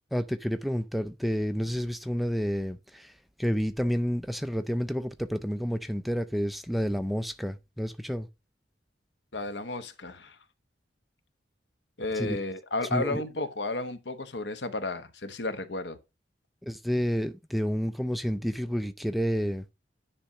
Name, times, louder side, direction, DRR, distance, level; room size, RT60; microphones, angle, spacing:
voice 1, 0.1-8.3 12.1-12.4 12.9-13.2 16.6-19.7, equal, ahead, 0.4 m, -30 dB
voice 2, 9.3-10.4 12.0-16.0, left 2 dB, 65° left, 1.1 m, -33 dB
10.0 x 3.4 x 5.3 m
head